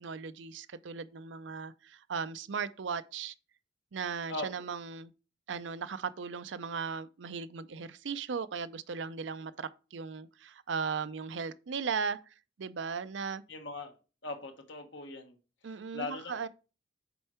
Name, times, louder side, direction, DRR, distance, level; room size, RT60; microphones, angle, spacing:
voice 1, 0.0-3.3 3.9-5.1 5.5-12.2 12.6-13.4 15.6-16.5, right 5 dB, 80° right, 0.5 m, -37 dB
voice 2, 13.5-13.9 14.2-15.4 15.9-16.4, left 2 dB, 85° left, 1.4 m, -39 dB
6.9 x 4.5 x 4.3 m
head